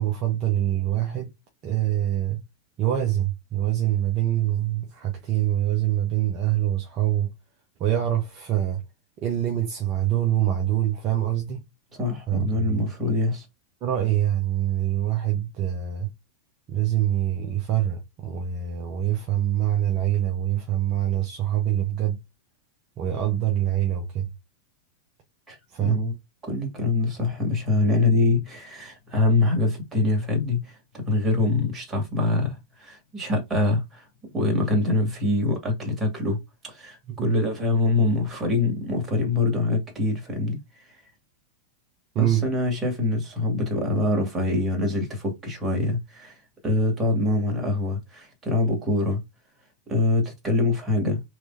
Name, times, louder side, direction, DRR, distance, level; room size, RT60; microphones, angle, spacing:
voice 1, 0.0-1.3 1.6-2.4 2.8-7.3 7.8-8.8 9.2-11.6 12.3-12.9 13.8-16.1 16.7-22.2 23.0-24.3 25.7-26.0 37.1-37.4 42.1-42.5, right 12 dB, 35° right, 0.9 m, -25 dB
voice 2, 12.0-13.4 25.5-26.1 26.5-34.1 34.3-36.4 36.6-40.6 42.2-46.3 46.6-49.2 49.9-51.2, left 2 dB, 15° right, 2.2 m, -24 dB
4.7 x 3.6 x 2.7 m
figure-of-eight pair, 90°, 0 cm